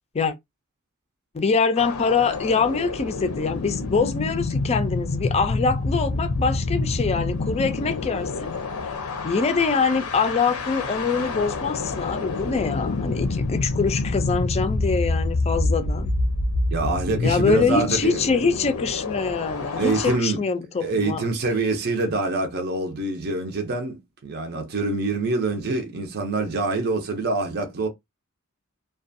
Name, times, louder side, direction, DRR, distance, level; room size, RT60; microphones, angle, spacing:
voice 1, 1.3-8.5 9.2-16.1 17.2-21.2, left 5 dB, 30° left, 0.4 m, -24 dB
sound 1, 1.8-20.2, left 3 dB, 80° left, 0.5 m, -27 dB
voice 2, 16.7-18.2 19.8-20.4 20.8-27.9, right 3 dB, 50° right, 0.6 m, -25 dB
2.4 x 2.2 x 2.6 m
head